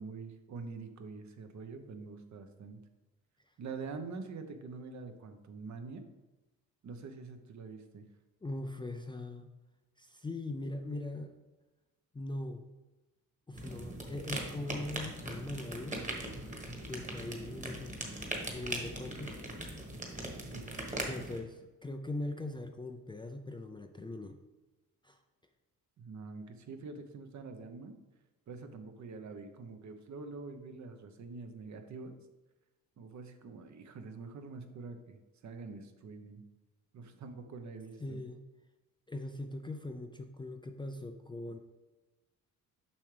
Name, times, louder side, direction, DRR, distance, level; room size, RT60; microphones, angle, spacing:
voice 1, 0.0-2.8 3.6-6.0 6.8-8.1 20.5-20.7 26.0-27.9 28.5-32.2 33.0-36.4 36.9-38.2, right 4 dB, 55° right, 7 dB, 0.9 m, -45 dB
voice 2, 8.4-9.5 10.0-11.3 12.1-12.6 13.5-16.0 16.9-18.0 18.5-19.5 21.0-24.4 25.0-25.2 38.0-38.4 39.1-41.6, left 2 dB, 15° left, 6 dB, 0.4 m, -41 dB
sound 1, 13.5-21.4, right 1 dB, 20° right, 1.4 m, -40 dB
7.1 x 5.8 x 3.3 m, 1.1 s
cardioid pair, 110°, 35 cm